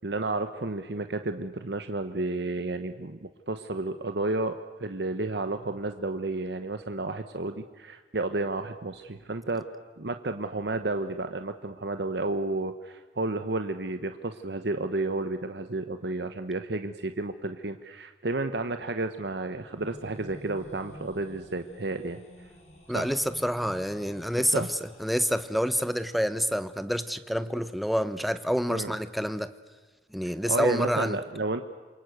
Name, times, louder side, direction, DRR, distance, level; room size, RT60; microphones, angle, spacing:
voice 1, 0.0-9.7 10.0-22.2 22.9-23.1 24.5-24.7 28.7-28.9 30.2-31.6, right 2 dB, 70° right, 8 dB, 1.0 m, -31 dB
sound 1, 19.4-26.3, equal, 40° left, 5.7 m, -50 dB
voice 2, 22.9-29.5 30.1-31.2, equal, ahead, 12 dB, 0.9 m, -28 dB
27.5 x 23.0 x 8.1 m, 1.4 s
head